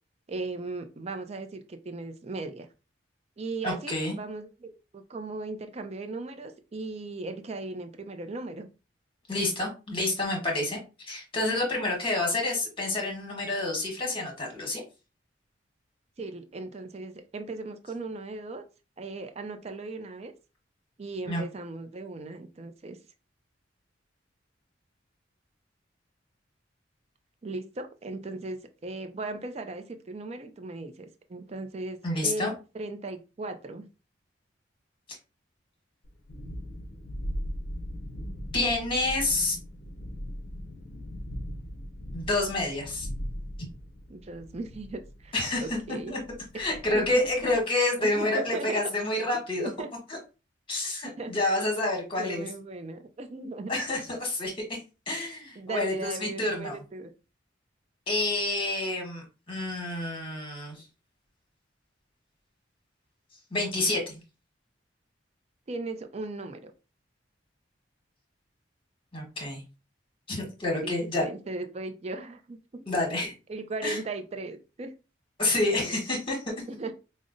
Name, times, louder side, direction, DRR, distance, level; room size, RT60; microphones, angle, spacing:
voice 1, 0.3-2.7 3.4-8.7 16.2-18.7 19.0-20.3 21.0-23.0 27.4-33.9 44.1-45.4 45.6-46.2 46.5-46.7 46.9-47.2 48.0-48.8 49.6-49.9 51.0-51.4 52.2-53.9 55.6-57.1 65.7-66.7 70.7-72.8 73.5-74.9 76.7-76.9, right 2 dB, 35° right, 8 dB, 0.4 m, -37 dB
voice 2, 3.6-4.2 9.3-14.8 21.3-21.4 32.0-32.5 38.5-39.6 42.1-43.1 45.3-45.6 46.1-46.2 46.5-49.7 50.7-52.5 53.7-54.8 55.1-56.7 58.1-60.8 63.5-64.2 69.1-69.6 70.3-71.3 72.9-73.3 73.8-74.0 75.4-76.4, left 2 dB, 30° left, 0 dB, 1.2 m, -28 dB
Thunderstorm, 36.0-47.6, equal, 55° left, 0.5 m, -39 dB
5.1 x 2.1 x 2.5 m, 0.31 s
head